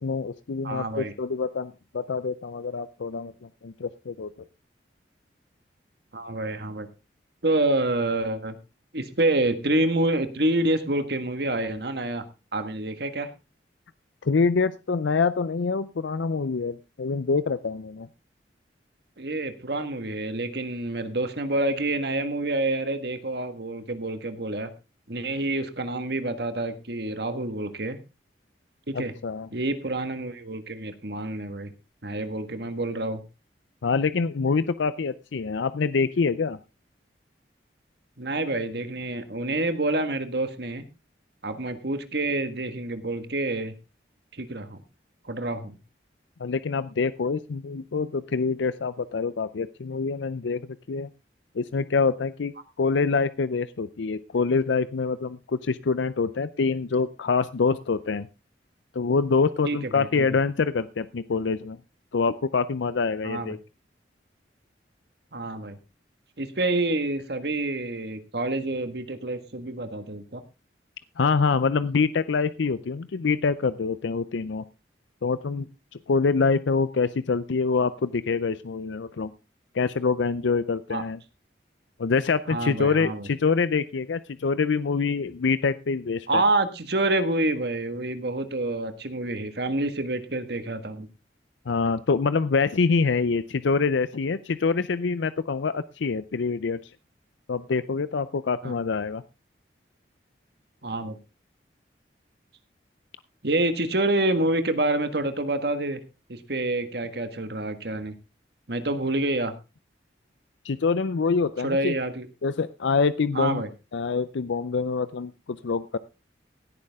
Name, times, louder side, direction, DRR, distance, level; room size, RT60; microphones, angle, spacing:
voice 1, 0.0-4.3 14.2-18.1 28.9-29.5 33.8-36.6 46.4-51.1 51.5-52.5 52.8-58.3 58.9-61.8 62.1-63.6 71.2-74.6 75.2-75.7 75.9-79.3 79.7-81.2 82.0-86.4 91.7-96.9 97.5-99.2 110.6-111.9 112.4-113.6 113.9-116.0, left 4 dB, 85° left, 15 dB, 0.5 m, -25 dB
voice 2, 0.6-1.1 6.1-6.9 7.4-8.6 8.9-12.2 12.5-13.3 19.2-24.7 25.1-28.0 28.9-29.1 29.5-31.7 32.0-33.2 38.2-40.8 41.4-43.7 44.4-44.8 45.2-45.8 59.6-60.3 63.2-63.5 65.3-65.8 66.4-70.4 80.9-81.0 82.5-83.3 86.3-91.1 98.6-98.7 100.8-101.2 103.4-106.0 106.3-108.1 108.7-109.5 111.6-112.3 113.3-113.7, right 2 dB, 60° right, 9 dB, 1.6 m, -27 dB
16.5 x 9.8 x 3.6 m, 0.29 s
head